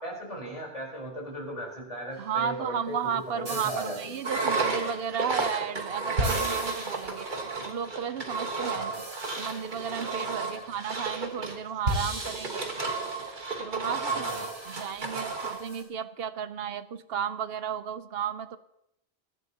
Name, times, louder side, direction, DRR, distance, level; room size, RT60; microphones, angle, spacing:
voice 1, 0.0-3.0 3.4-4.2 8.7-9.0 14.1-14.4, right 1 dB, 30° left, -1 dB, 4.4 m, -37 dB
sound 1, 2.1-2.2 3.5-4.8 6.2-7.6 8.9-10.3 11.9-13.8 14.3-15.8, right 1 dB, 90° right, 3.3 m, -37 dB
voice 2, 2.2-7.3 7.6-9.0 9.4-12.8 13.6-18.6, right 8 dB, 60° right, 13 dB, 0.9 m, -33 dB
Engine, 4.2-15.6, right 3 dB, 45° right, 1.6 m, -32 dB
21.5 x 12.0 x 2.9 m, 0.81 s
omnidirectional pair, 1.2 m